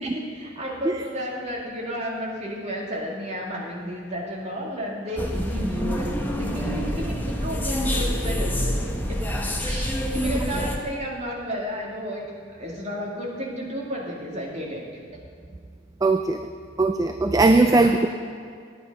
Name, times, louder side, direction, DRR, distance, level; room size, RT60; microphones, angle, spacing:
voice 1, 0.0-9.2 9.6-12.3 12.6-14.8 17.6-17.9, equal, 35° right, -3 dB, 2.1 m, -32 dB
sound 1, 5.2-10.8, equal, 10° left, 0.9 m, -27 dB
voice 2, 16.0-16.4 16.8-18.1, right 2 dB, 20° right, 7 dB, 0.3 m, -19 dB
10.0 x 9.6 x 5.3 m, 2.2 s
head